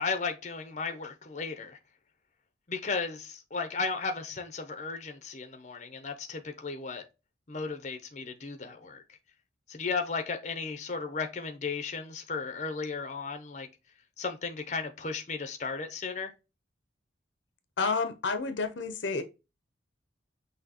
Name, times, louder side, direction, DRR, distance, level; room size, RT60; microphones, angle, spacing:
voice 1, 0.0-1.8 2.7-7.0 7.5-9.0 9.7-13.7 14.2-16.3, left 4 dB, 40° left, 0.7 m, -35 dB
voice 2, 17.8-19.2, left 4 dB, 75° left, 0.7 m, -30 dB
6.0 x 2.9 x 2.9 m
head